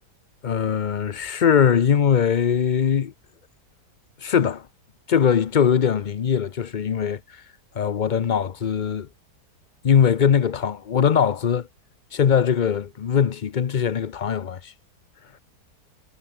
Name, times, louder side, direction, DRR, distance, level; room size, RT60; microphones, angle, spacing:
voice 1, 0.4-3.1 4.2-4.7 5.1-7.4 7.8-9.1 9.8-11.7 12.1-14.7, left 7 dB, 65° left, 0.4 m, -21 dB
omnidirectional pair, 1.8 m